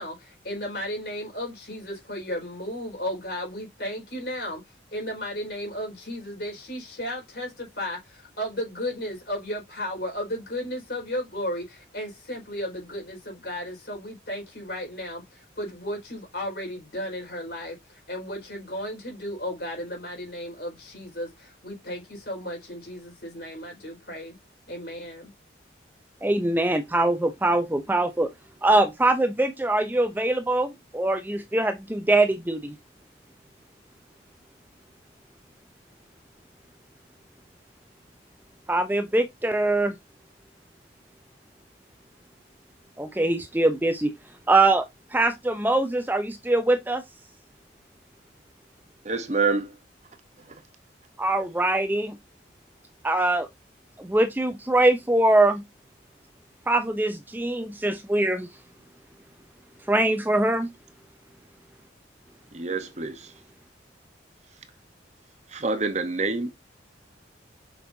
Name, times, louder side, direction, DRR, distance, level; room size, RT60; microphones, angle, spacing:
voice 1, 0.0-4.6 4.9-24.4 24.7-25.3, equal, 55° left, 4.6 m, -34 dB
voice 2, 26.2-28.3 28.6-32.8 38.7-40.0 43.0-44.1 44.5-47.0 51.2-52.2 53.0-53.5 54.0-55.6 56.7-58.5 59.9-60.7, right 2 dB, 10° right, 0.5 m, -23 dB
voice 3, 49.0-49.8 50.5-50.6 62.5-63.3 65.5-66.5, right 3 dB, 35° right, 0.9 m, -27 dB
6.9 x 5.4 x 2.7 m
head